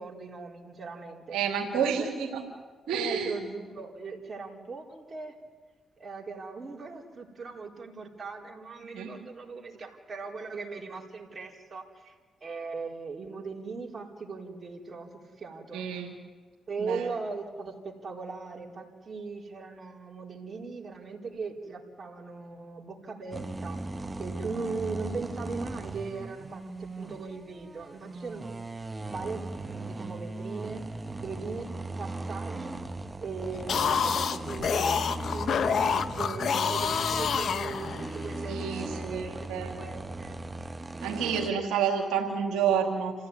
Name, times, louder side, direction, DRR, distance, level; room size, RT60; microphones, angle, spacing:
voice 1, 0.0-1.4 1.7-2.1 2.9-5.3 6.0-12.1 12.4-15.1 15.4-15.9 16.7-23.8 24.2-28.6 29.0-30.8 31.2-31.7 32.0-32.8 33.2-40.4 41.4-41.7, right 4 dB, 45° right, 1 dB, 4.2 m, -39 dB
voice 2, 1.3-2.4 2.9-3.3 8.9-9.1 15.7-16.1 16.8-17.1 38.5-39.7 41.0-43.1, right 7 dB, 90° right, 0 dB, 2.6 m, -29 dB
sound 1, 23.3-41.5, right 2 dB, 25° right, 1.2 m, -38 dB
sound 2, 33.5-38.3, left 6 dB, 65° left, 1.1 m, -28 dB
28.0 x 15.5 x 9.7 m, 1.5 s
supercardioid pair, 60°, 0 cm